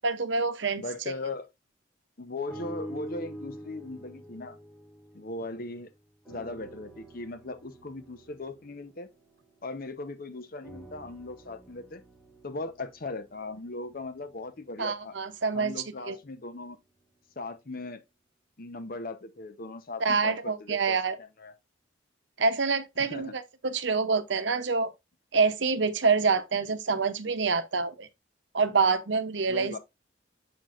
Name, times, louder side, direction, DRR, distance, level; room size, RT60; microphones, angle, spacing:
voice 1, 0.0-0.8 14.8-15.7 16.1-16.2 20.0-21.2 22.4-24.9 25.3-28.1 28.5-29.8, right 4 dB, 70° right, 0.8 m, -26 dB
voice 2, 0.8-1.5 2.2-4.6 5.1-5.9 6.3-9.1 9.6-12.0 12.4-15.1 15.5-16.8 17.4-18.0 18.6-21.5 23.1-23.3 29.5-29.8, left 2 dB, 50° left, 0.9 m, -38 dB
sound 1, 2.5-5.8 6.2-10.0 10.6-14.8 15.5-15.6, right 1 dB, 5° left, 1.9 m, -46 dB
6.8 x 6.0 x 2.5 m
head